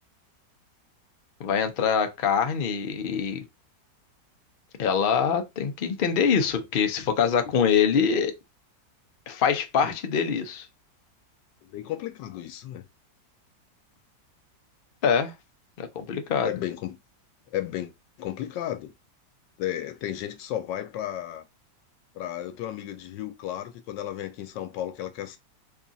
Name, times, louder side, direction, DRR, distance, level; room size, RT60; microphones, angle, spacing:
voice 1, 1.4-3.4 4.8-8.3 9.3-10.7 15.0-15.3 15.8-16.5, left 7 dB, 70° left, 0.5 m, -24 dB
voice 2, 11.6-12.8 16.4-17.0 17.5-17.9 18.2-18.9 19.6-21.4 22.1-25.4, left 12 dB, 85° left, 1.3 m, -33 dB
3.5 x 2.4 x 3.9 m
omnidirectional pair, 1.9 m